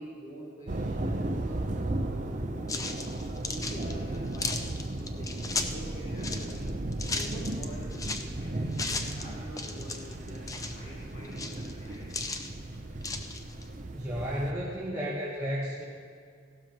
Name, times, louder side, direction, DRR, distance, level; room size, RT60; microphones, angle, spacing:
voice 1, 0.0-3.0 3.4-6.7 7.1-12.2, equal, 35° left, -7 dB, 1.8 m, -47 dB
sound 1, 0.7-14.5, right 1 dB, 35° right, 0.6 m, -35 dB
sound 2, 2.7-5.8 6.2-8.3 8.7-9.2 9.6-10.8 11.2-12.5 13.0-13.6, left 3 dB, 15° left, 0.5 m, -35 dB
voice 2, 13.9-15.8, equal, 15° right, -7 dB, 1.2 m, -33 dB
16.0 x 12.5 x 3.0 m, 2.2 s
head